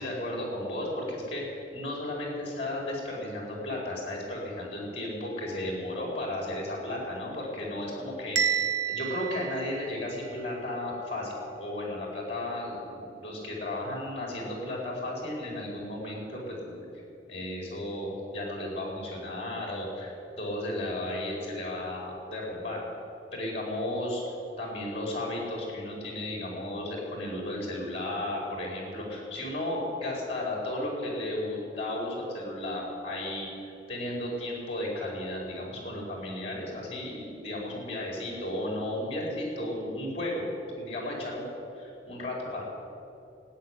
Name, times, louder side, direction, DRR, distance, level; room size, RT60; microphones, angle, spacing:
voice 1, 0.0-16.9 17.3-20.1 20.4-22.8 23.3-24.2 24.6-33.5 33.9-40.5 40.7-41.4 41.7-42.7, left 1 dB, 35° left, -2 dB, 4.7 m, -34 dB
Bell, 8.4-10.4, right 8 dB, 70° right, 0.8 m, -30 dB
14.5 x 9.5 x 9.7 m, 2.8 s
head